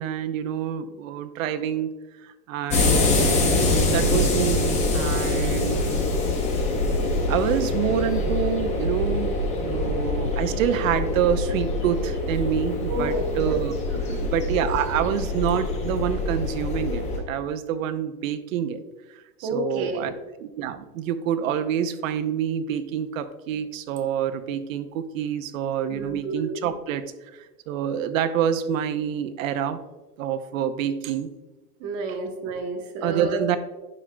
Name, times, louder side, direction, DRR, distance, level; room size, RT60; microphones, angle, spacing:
voice 1, 0.0-3.6 3.9-4.6 4.9-5.8 7.3-13.7 14.3-18.8 19.1-20.1 20.4-27.0 27.3-29.8 30.2-31.3 33.0-33.6, right 9 dB, 55° right, 10 dB, 0.7 m, -27 dB
sound 1, 2.7-17.2, left 2 dB, 15° left, 0.7 m, -24 dB
voice 2, 12.9-13.6 14.1-14.2 19.4-20.1 25.9-26.6 31.8-33.4, right 1 dB, 30° right, 3 dB, 1.0 m, -30 dB
9.8 x 6.2 x 2.2 m, 1.1 s
supercardioid pair, 160°, 48 cm